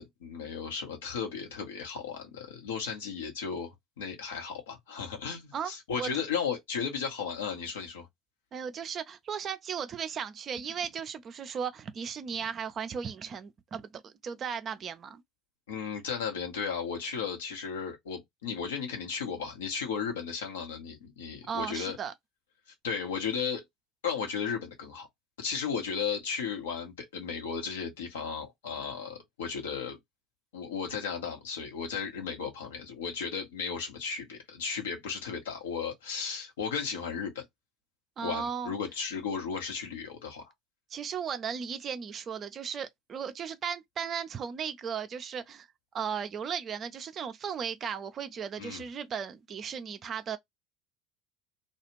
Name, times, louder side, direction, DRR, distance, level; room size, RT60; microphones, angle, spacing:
voice 1, 0.0-8.1 15.7-22.0 22.8-23.6 24.0-25.1 25.4-30.0 30.5-37.4 38.2-40.5 48.6-48.8, left 6 dB, 70° left, 1.0 m, -35 dB
voice 2, 8.5-15.2 21.5-22.1 38.2-38.7 40.9-45.7 45.9-50.4, right 7 dB, 35° right, 0.5 m, -36 dB
2.4 x 2.4 x 3.1 m
figure-of-eight pair, 70°, 0 cm